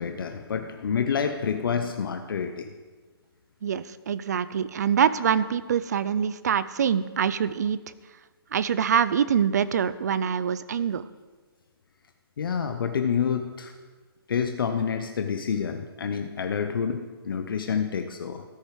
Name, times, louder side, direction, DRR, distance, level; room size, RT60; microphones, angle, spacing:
voice 1, 0.0-2.7 12.4-13.7 14.3-18.4, left 7 dB, 60° left, 7 dB, 0.7 m, -28 dB
voice 2, 3.6-7.8 8.5-11.1, right 8 dB, 45° right, 16 dB, 0.4 m, -25 dB
14.0 x 6.6 x 4.7 m, 1.4 s
hypercardioid pair, 170°, 13 cm